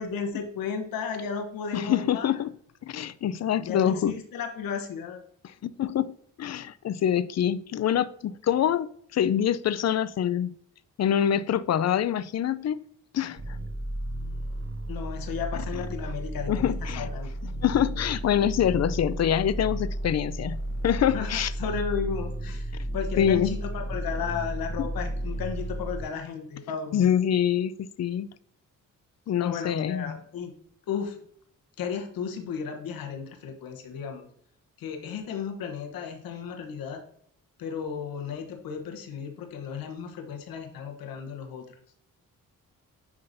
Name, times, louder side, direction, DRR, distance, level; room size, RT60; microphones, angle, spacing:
voice 1, 0.0-2.4 3.6-5.2 14.9-17.3 21.1-27.1 29.4-30.5 30.9-31.2 31.8-34.3 34.8-37.0 37.6-41.7, left 6 dB, 90° left, 1.1 m, -34 dB
voice 2, 1.7-2.5 2.9-4.1 5.6-6.1 6.4-10.5 11.0-12.8 13.1-13.4 16.5-17.1 17.6-20.6 20.8-21.5 23.2-23.5 24.8-24.9 26.9-27.7 28.0-28.3 29.3-30.2, left 9 dB, 50° left, 0.5 m, -25 dB
sound 1, 13.4-26.0, right 1 dB, 40° right, 1.5 m, -33 dB
9.5 x 3.7 x 2.6 m
cardioid pair, 60°, 34 cm